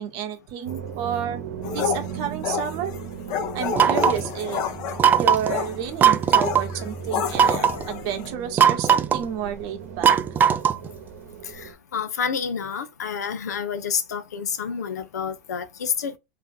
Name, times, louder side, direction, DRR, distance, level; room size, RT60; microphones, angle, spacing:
voice 1, 0.0-1.4 1.7-2.9 3.5-4.6 5.2-10.1, right 9 dB, 50° right, 1.0 m, -31 dB
sound 1, 0.6-11.7, right 7 dB, 70° right, 1.0 m, -37 dB
sound 2, 1.6-8.3, left 7 dB, 45° left, 0.8 m, -30 dB
sound 3, 3.8-4.3 5.0-5.5 6.0-6.6 7.3-7.8 8.6-9.2 10.0-10.9, right 8 dB, 20° right, 0.4 m, -18 dB
voice 2, 11.9-16.2, left 7 dB, 85° left, 0.7 m, -28 dB
3.4 x 2.8 x 3.5 m
hypercardioid pair, 115°, 9 cm